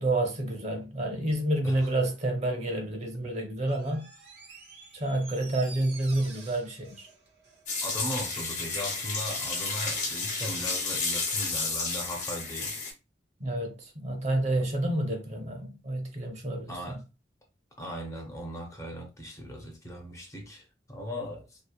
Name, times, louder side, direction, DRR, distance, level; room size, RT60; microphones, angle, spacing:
voice 1, 0.0-4.1 4.9-7.1 13.4-17.0, right 1 dB, 40° right, 0.6 m, -29 dB
Door, 3.6-8.2 8.5-8.6, right 4 dB, 75° right, 0.9 m, -49 dB
sound 1, 7.7-12.9, left 3 dB, 45° left, 0.8 m, -31 dB
voice 2, 7.8-12.8 16.7-17.0 17.8-21.6, equal, 20° left, 0.5 m, -38 dB
2.7 x 2.2 x 2.2 m
head